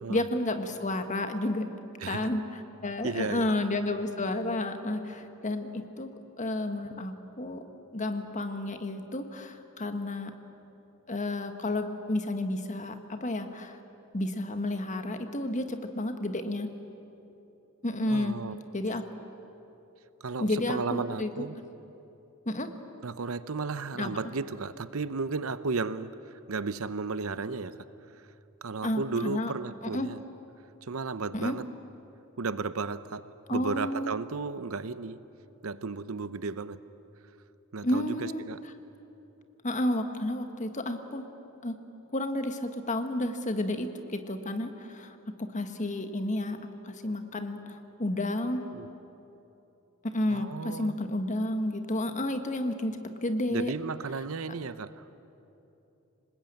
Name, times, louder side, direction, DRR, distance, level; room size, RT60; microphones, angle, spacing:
voice 1, 0.1-1.7 2.1-6.1 6.4-7.6 7.9-10.3 11.1-13.8 14.1-16.7 17.8-18.4 18.7-19.1 20.4-21.3 22.4-22.7 24.0-24.1 28.8-29.5 29.9-30.1 31.3-31.6 33.5-34.1 37.8-38.4 39.6-41.2 41.6-41.8 42.1-46.6 46.8-48.6 50.0-53.7, left 1 dB, 35° left, 7 dB, 1.6 m, -31 dB
voice 2, 2.0-2.3 3.0-3.5 18.1-18.6 20.2-21.5 23.0-27.9 28.1-28.2 28.6-30.2 30.8-31.7 32.4-35.3 35.6-36.8 37.7-38.6 48.7-48.9 50.3-50.9 53.5-55.0, right 4 dB, 75° right, 14 dB, 0.8 m, -34 dB
26.0 x 20.0 x 9.0 m, 3.0 s
head